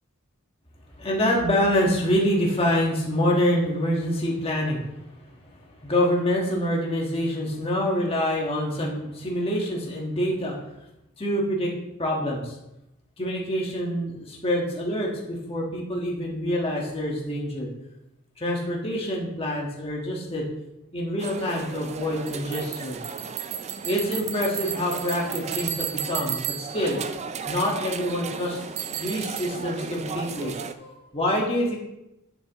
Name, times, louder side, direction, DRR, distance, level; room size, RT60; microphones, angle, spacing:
voice 1, 1.0-4.9 5.2-5.3 5.8-10.6 11.2-11.7 12.0-12.5 13.2-17.7 18.4-20.4 20.9-23.0 23.8-27.0 27.5-31.8, equal, 25° left, -2 dB, 1.5 m, -26 dB
sound 1, 21.2-30.7, right 7 dB, 30° right, 0.4 m, -33 dB
9.7 x 7.1 x 3.1 m, 0.88 s
head